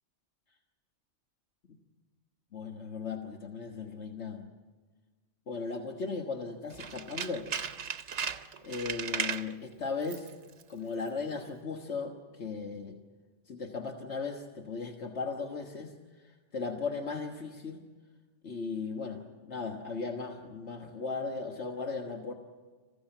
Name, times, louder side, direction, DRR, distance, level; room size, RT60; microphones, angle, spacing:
voice 1, 2.5-4.5 5.5-7.5 8.6-10.3 10.7-13.0 13.5-15.9 16.5-17.8 18.4-22.3, left 4 dB, 75° left, 2 dB, 1.7 m, -37 dB
Tools, 6.7-9.5 10.0-10.3 10.6-10.7, right 7 dB, 80° right, 1.2 m, -36 dB
26.5 x 16.0 x 9.0 m, 1.4 s
omnidirectional pair, 1.2 m